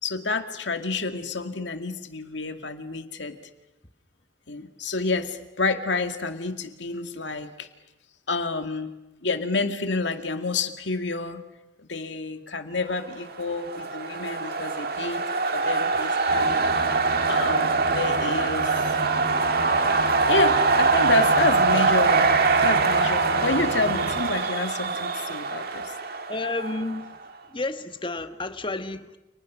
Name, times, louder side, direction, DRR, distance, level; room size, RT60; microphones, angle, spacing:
voice 1, 0.0-3.4 4.5-7.7 8.3-8.9 9.2-11.4 11.8-15.2 15.5-17.0 17.3-18.7 20.3-22.3 22.6-25.9, left 3 dB, 70° left, 7 dB, 2.2 m, -29 dB
sound 1, 13.3-27.1, right 4 dB, 55° right, 1.9 m, -23 dB
sound 2, 16.3-24.2, equal, 90° right, 7.5 m, -36 dB
voice 2, 26.3-27.2 27.5-29.2, left 2 dB, 25° left, 9 dB, 1.5 m, -31 dB
29.5 x 29.5 x 6.3 m, 0.95 s
head